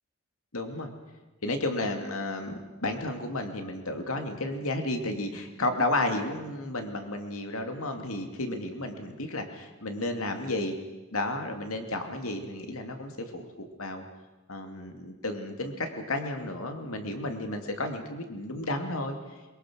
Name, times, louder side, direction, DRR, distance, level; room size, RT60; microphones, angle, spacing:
voice 1, 0.5-0.9 1.4-10.7 11.1-14.0 14.5-19.2, left 2 dB, 75° left, 5 dB, 2.6 m, -32 dB
23.0 x 22.5 x 6.3 m, 1.1 s
head